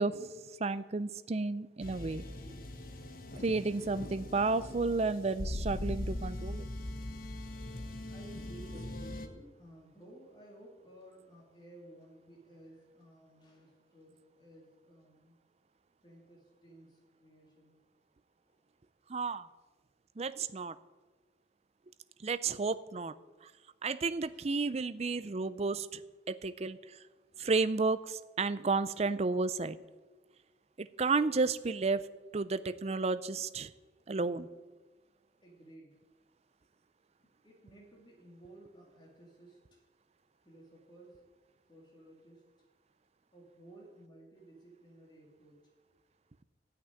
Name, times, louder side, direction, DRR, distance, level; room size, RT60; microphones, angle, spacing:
voice 1, 0.0-2.2 3.4-6.7 19.1-19.5 20.2-20.8 22.2-23.1 23.4-23.5 23.8-26.0 26.3-27.0 27.4-29.8 30.8-32.1 32.3-33.7 34.1-34.5, right 3 dB, 35° right, 14 dB, 0.5 m, -32 dB
sound 1, 1.8-9.3, left 1 dB, 55° left, 1.0 m, -40 dB
voice 2, 8.1-15.4 16.0-17.8 18.4-18.6 22.1-22.2 24.3-24.5 27.3-27.5 31.6-31.7 35.4-36.0 37.2-39.8 40.4-41.3 41.7-42.5 43.3-45.7, right 1 dB, 25° left, -2 dB, 2.7 m, -56 dB
13.0 x 6.0 x 9.7 m, 1.3 s
head